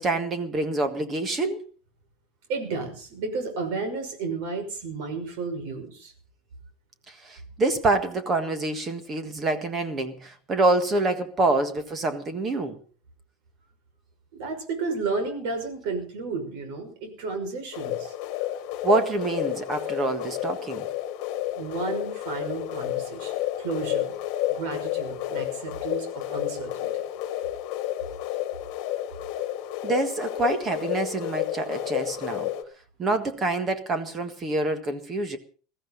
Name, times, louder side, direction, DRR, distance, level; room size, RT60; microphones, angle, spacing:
voice 1, 0.0-1.6 7.1-12.8 18.8-20.9 29.8-32.5 33.0-35.4, right 2 dB, 20° right, 1.6 m, -26 dB
voice 2, 2.5-6.1 14.3-18.1 21.6-24.1 24.5-26.9, right 4 dB, 60° right, 5.8 m, -32 dB
sound 1, 17.7-32.6, left 13 dB, 50° left, 1.9 m, -31 dB
21.0 x 14.5 x 4.0 m
cardioid pair, 180°, 0 cm